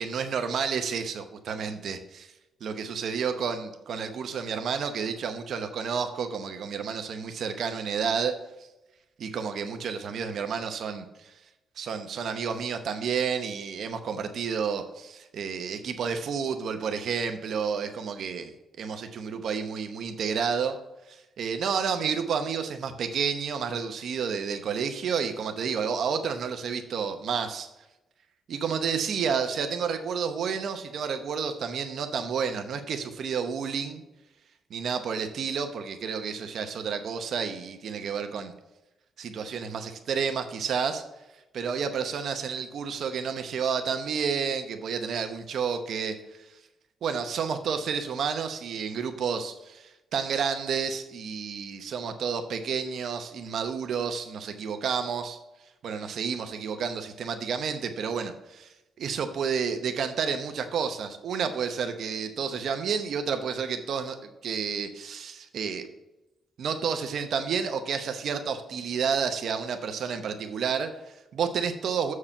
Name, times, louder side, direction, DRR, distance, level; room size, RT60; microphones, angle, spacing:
voice 1, 0.0-2.3 2.6-8.4 9.2-11.1 11.8-20.8 21.1-27.7 28.5-34.0 34.7-38.5 39.2-41.0 41.5-46.4 47.0-55.4 55.8-65.9 66.6-72.1, right 6 dB, 60° right, 7 dB, 0.8 m, -30 dB
7.3 x 4.8 x 6.6 m, 0.97 s
cardioid pair, 160°, 0 cm